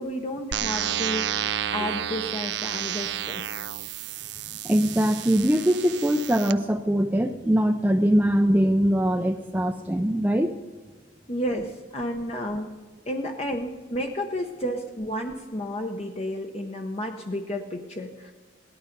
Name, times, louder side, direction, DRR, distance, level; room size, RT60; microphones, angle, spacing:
voice 1, 0.0-3.7 11.3-12.7 13.1-18.3, equal, 35° left, 3 dB, 0.8 m, -32 dB
sound 1, 0.5-6.5, right 10 dB, 60° right, 0.5 m, -31 dB
voice 2, 4.6-10.6, equal, 10° right, 5 dB, 0.5 m, -22 dB
17.0 x 11.5 x 5.2 m, 1.3 s
head